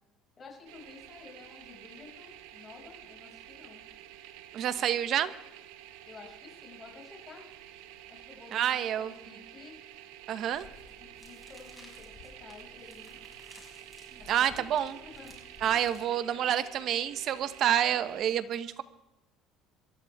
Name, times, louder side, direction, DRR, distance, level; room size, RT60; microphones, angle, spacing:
voice 1, 0.4-3.8 6.0-7.5 8.1-9.8 10.9-13.2 14.2-15.8 16.3-16.6, left 4 dB, 30° left, -1 dB, 6.1 m, -52 dB
sound 1, 0.7-18.2, right 11 dB, 85° right, 1.1 m, -50 dB
voice 2, 4.5-5.3 8.5-9.1 10.3-10.7 14.3-15.0 15.6-18.8, right 10 dB, 55° right, 12 dB, 1.0 m, -28 dB
sound 2, 10.5-16.1, left 3 dB, 10° left, 6.1 m, -55 dB
26.0 x 13.0 x 3.5 m, 0.93 s
cardioid pair, 110°, 0 cm